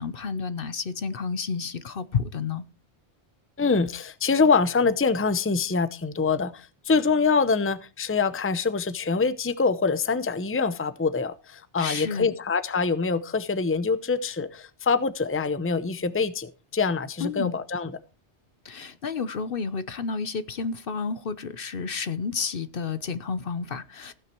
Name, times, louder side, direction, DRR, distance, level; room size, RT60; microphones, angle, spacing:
voice 1, 0.0-2.6 11.8-12.3 17.2-17.5 18.6-24.1, left 5 dB, 55° left, 1.0 m, -31 dB
voice 2, 3.6-18.0, left 4 dB, 15° left, 0.7 m, -25 dB
15.5 x 9.2 x 4.5 m
omnidirectional pair, 1.1 m